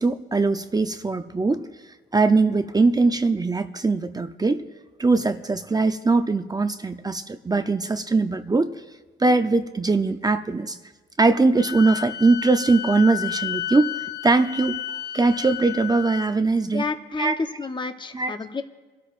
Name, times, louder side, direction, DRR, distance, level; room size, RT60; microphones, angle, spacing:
voice 1, 0.0-1.7 2.1-4.6 5.0-8.7 9.2-10.8 11.2-13.9 14.2-14.8 15.1-16.8 17.2-17.4 18.1-18.3, right 3 dB, 20° right, 0.6 m, -21 dB
Wind instrument woodwind instrument, 11.6-16.3, left 11 dB, 55° left, 0.8 m, -32 dB
voice 2, 16.7-18.6, left 4 dB, 25° left, 0.9 m, -30 dB
26.0 x 13.0 x 2.5 m
cardioid pair, 90°, 20 cm